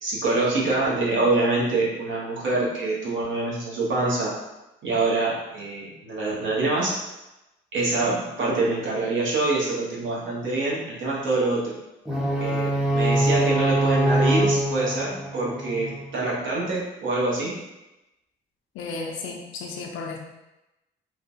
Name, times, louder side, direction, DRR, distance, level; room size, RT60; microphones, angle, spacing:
voice 1, 0.0-4.3 4.8-6.9 7.7-11.7 12.4-17.5, right 2 dB, 75° right, -4 dB, 1.0 m, -25 dB
sound 1, 12.1-16.1, right 1 dB, 5° right, 0.5 m, -23 dB
voice 2, 18.7-20.2, left 4 dB, 90° left, 1 dB, 0.5 m, -34 dB
3.1 x 2.1 x 2.6 m, 0.96 s
cardioid pair, 90°, 20 cm